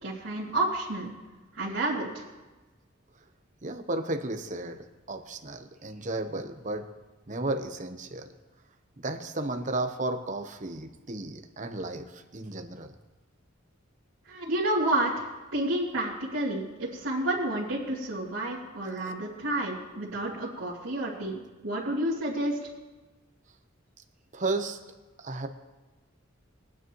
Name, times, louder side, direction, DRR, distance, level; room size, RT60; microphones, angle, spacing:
voice 1, 0.0-1.1 1.5-2.2 14.3-22.6, right 1 dB, 75° right, -10 dB, 2.5 m, -30 dB
voice 2, 3.6-6.9 7.3-8.3 9.0-12.9 18.8-19.1 24.3-24.8 25.2-25.5, right 2 dB, 40° right, 7 dB, 0.9 m, -34 dB
21.0 x 9.6 x 3.1 m, 1.2 s
head